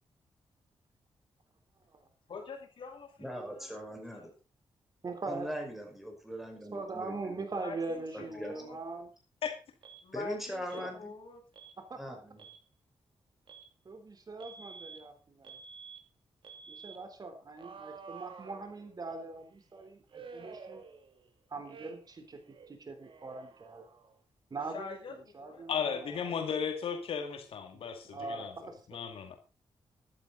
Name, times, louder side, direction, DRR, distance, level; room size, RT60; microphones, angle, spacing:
voice 1, 2.3-4.3 7.6-8.8 10.0-11.4 24.7-25.6, left 5 dB, 60° left, 0 dB, 7.2 m, -46 dB
voice 2, 3.2-4.3 5.3-7.4 8.1-8.8 10.1-11.1 11.9-12.5, equal, ahead, 4 dB, 5.3 m, -41 dB
voice 3, 5.0-5.5 6.7-9.1 10.7-10.9 11.9-12.2 13.9-15.6 16.7-20.8 21.5-22.4 22.7-23.9 24.5-25.0 25.3-26.3 27.7-29.0, right 3 dB, 45° right, 7 dB, 3.7 m, -41 dB
Alarm, 9.8-10.0 10.7-10.9 11.5-11.8 12.3-12.6 13.5-13.7 14.4-15.0 15.4-16.0 16.4-17.0 17.6-19.1 20.1-21.3 21.6-22.2 22.5-24.2, right 5 dB, 60° right, 2.8 m, -50 dB
voice 4, 25.7-28.5 28.9-29.4, left 7 dB, 75° left, 5 dB, 2.3 m, -35 dB
15.0 x 12.0 x 4.1 m, 0.31 s
cardioid pair, 95°, 10 cm